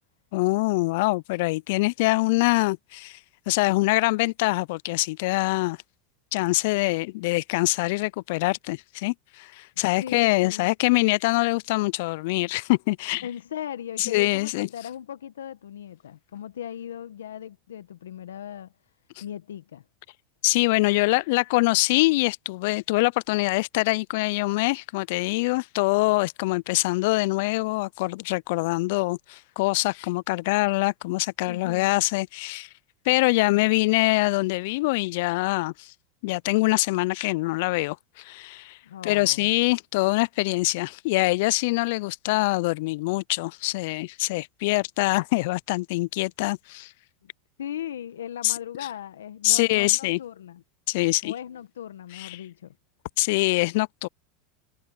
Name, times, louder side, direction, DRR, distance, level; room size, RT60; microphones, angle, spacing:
voice 1, 0.3-3.2 3.5-5.8 6.3-13.2 14.0-14.7 20.4-32.7 33.1-35.9 36.2-38.8 39.0-46.9 48.4-48.5 49.4-50.2 50.9-51.3 52.1-52.4 53.2-54.1, left 23 dB, 65° left, 0.4 m, -24 dB
voice 2, 10.0-10.7 13.2-18.7 19.2-19.8 31.4-32.0 38.8-39.5 47.2-47.3 47.6-50.6 51.2-52.7, left 10 dB, 85° left, 1.2 m, -38 dB
hypercardioid pair, 95°, 0 cm